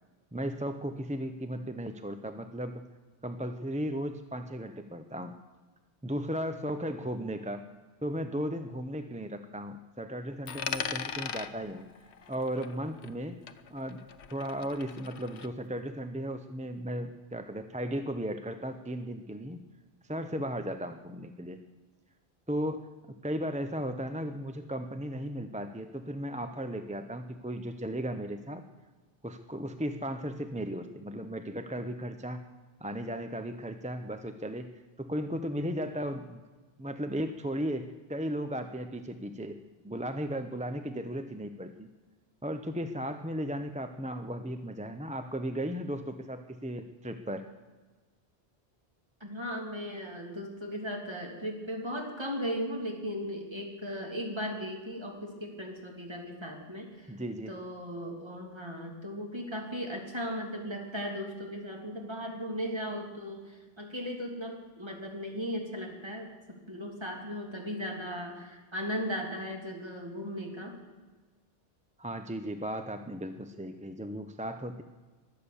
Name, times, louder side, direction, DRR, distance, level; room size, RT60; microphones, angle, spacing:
voice 1, 0.3-2.8 3.2-5.3 6.0-7.6 8.0-11.9 12.3-13.4 13.7-14.0 14.3-19.6 20.1-21.6 22.5-22.9 23.2-28.6 29.2-32.4 32.8-34.7 35.0-36.4 36.8-39.6 39.8-41.9 42.4-47.5 57.1-57.5 72.0-74.8, equal, 10° right, 8 dB, 0.5 m, -35 dB
Coin (dropping), 10.5-13.2 13.5-15.5, left 7 dB, 85° left, 1.1 m, -39 dB
voice 2, 49.2-57.1 57.5-70.8, equal, 25° right, 0 dB, 2.9 m, -37 dB
22.5 x 8.5 x 7.0 m, 1.3 s
omnidirectional pair, 1.1 m